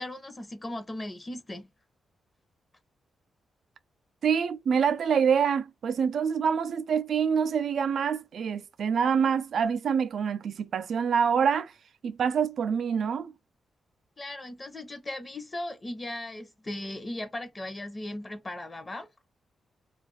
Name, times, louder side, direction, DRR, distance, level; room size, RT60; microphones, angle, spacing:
voice 1, 0.0-1.7 14.2-19.1, left 1 dB, 30° left, 0.7 m, -37 dB
voice 2, 4.2-11.7 12.0-13.3, right 7 dB, 70° right, 0.3 m, -26 dB
2.4 x 2.2 x 3.1 m
cardioid pair, 75°, 0 cm